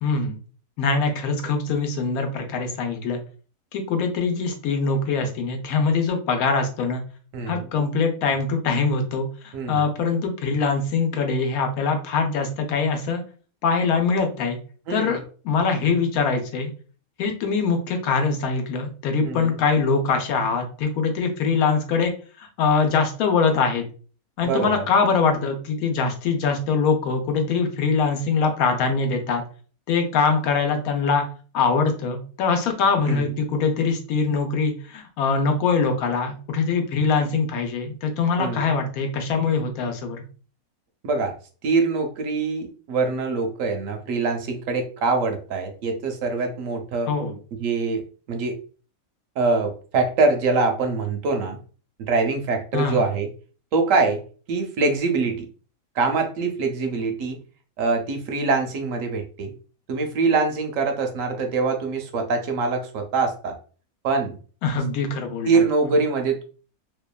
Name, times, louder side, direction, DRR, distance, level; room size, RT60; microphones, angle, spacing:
voice 1, 0.0-0.4 0.8-3.2 3.7-7.0 7.5-13.2 13.6-14.6 14.9-15.2 15.4-16.7 17.2-22.1 22.4-23.8 24.4-29.4 29.9-31.2 31.5-40.2 47.1-47.4 52.7-53.0 64.6-65.9, left 4 dB, 85° left, 5 dB, 1.1 m, -23 dB
voice 2, 7.3-7.7 9.5-9.8 14.9-15.2 19.2-19.6 24.4-24.9 33.0-33.3 38.4-38.7 41.0-41.3 41.6-47.1 47.6-48.0 48.3-48.6 49.4-51.6 52.1-53.3 53.7-54.2 54.5-55.4 56.0-57.4 57.8-59.5 59.9-63.5 64.0-64.4 65.4-66.4, right 4 dB, 70° right, 4 dB, 0.9 m, -24 dB
2.7 x 2.2 x 2.2 m, 0.39 s
omnidirectional pair, 1.5 m